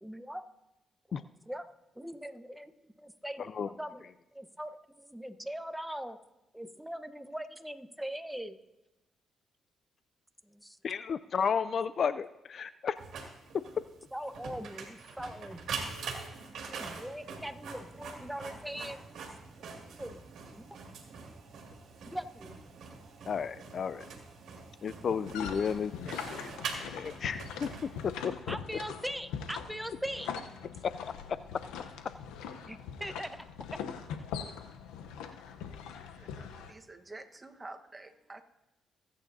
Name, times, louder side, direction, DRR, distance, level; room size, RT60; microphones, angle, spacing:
voice 1, 0.0-0.4 1.5-1.6 2.0-2.7 3.0-4.0 4.3-6.2 6.5-8.6 10.5-10.8 14.1-15.7 16.7-19.0 20.0-20.2 20.5-20.6 22.0-22.5 28.5-30.3 32.6-33.4, equal, 5° right, 9 dB, 1.0 m, -41 dB
voice 2, 3.4-3.7 10.8-13.0 23.3-24.1 24.8-28.6 30.8-31.1, left 6 dB, 55° left, 14 dB, 0.4 m, -33 dB
Printer, 13.0-28.3, right 5 dB, 70° right, 2.2 m, -44 dB
sound 1, 25.1-36.7, left 7 dB, 90° left, 0.8 m, -42 dB
voice 3, 36.2-38.4, right 2 dB, 25° right, 7 dB, 1.2 m, -49 dB
21.5 x 8.9 x 2.7 m, 0.97 s
supercardioid pair, 60°, 0 cm